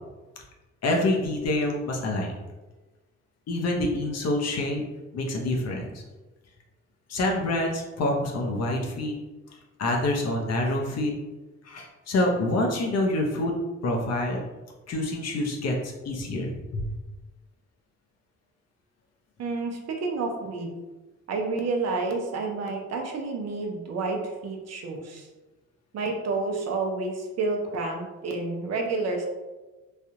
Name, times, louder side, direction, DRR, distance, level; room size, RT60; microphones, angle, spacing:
voice 1, 0.8-2.3 3.5-4.8 5.1-6.0 7.1-9.1 9.8-11.1 11.6-13.5 13.8-14.4 14.9-16.8, left 1 dB, 55° left, 0 dB, 0.8 m, -26 dB
voice 2, 19.4-20.8 21.3-25.3 25.9-29.3, right 3 dB, 60° right, 2 dB, 0.6 m, -29 dB
3.2 x 2.3 x 2.8 m, 1.2 s
cardioid pair, 90°, 30 cm